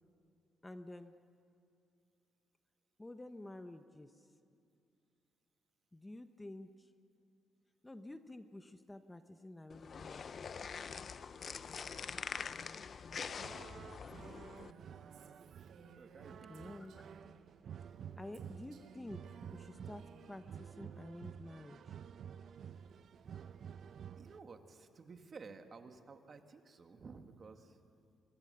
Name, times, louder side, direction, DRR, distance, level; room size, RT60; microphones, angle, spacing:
voice 1, 0.6-1.1 3.0-4.1 5.9-6.9 7.8-10.6 16.5-17.0 18.2-19.2 19.5-21.8, left 1 dB, 15° left, 9 dB, 1.1 m, -50 dB
sound 1, 9.7-14.7, left 6 dB, 45° left, 0.7 m, -44 dB
sound 2, 13.1-24.4, right 8 dB, 60° right, 0.7 m, -51 dB
Female speech woman speaking, 14.2-17.4 18.3-20.6, right 4 dB, 75° right, 3.5 m, -60 dB
voice 2, 16.0-16.9 24.2-27.8, right 4 dB, 40° right, 6 dB, 1.9 m, -54 dB
26.0 x 22.5 x 6.9 m, 2.4 s
cardioid pair, 90°, 0 cm